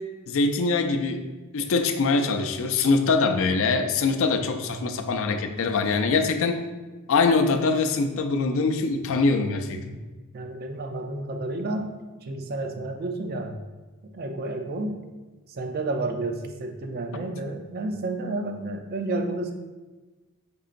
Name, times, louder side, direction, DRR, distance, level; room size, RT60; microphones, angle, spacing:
voice 1, 0.3-1.2 1.5-6.6 7.1-10.0, left 4 dB, 65° left, 6 dB, 0.4 m, -23 dB
voice 2, 4.6-5.1 7.1-7.2 10.3-12.0 12.2-13.6 14.1-15.1 15.5-19.5, right 2 dB, 45° right, 6 dB, 0.5 m, -31 dB
5.4 x 3.8 x 2.5 m, 1.2 s
head